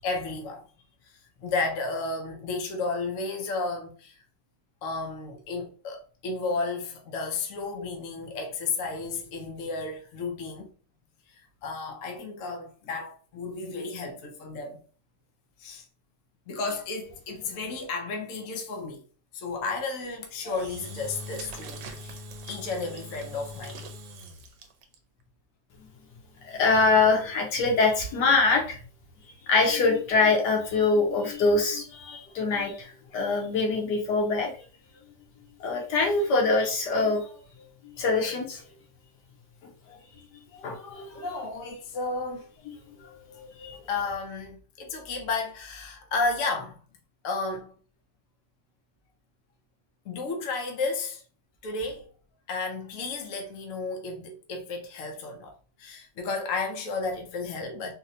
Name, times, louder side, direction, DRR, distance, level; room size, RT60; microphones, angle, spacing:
voice 1, 0.0-0.6 1.4-4.2 4.8-10.7 11.6-14.8 15.6-15.8 16.5-19.0 19.3-22.2 22.5-23.8 41.1-42.5 43.9-46.8 47.2-47.7 50.1-51.2 51.6-52.1 52.5-55.5 55.8-57.9, left 3 dB, 60° left, 1.0 m, -32 dB
Engine / Drill, 20.4-25.0, equal, 80° right, 1.2 m, -42 dB
voice 2, 26.4-28.8 29.5-34.5 35.6-37.3 38.0-38.6 40.6-41.3 43.3-43.8, left 3 dB, 80° left, 1.4 m, -24 dB
3.8 x 2.1 x 2.7 m
omnidirectional pair, 1.8 m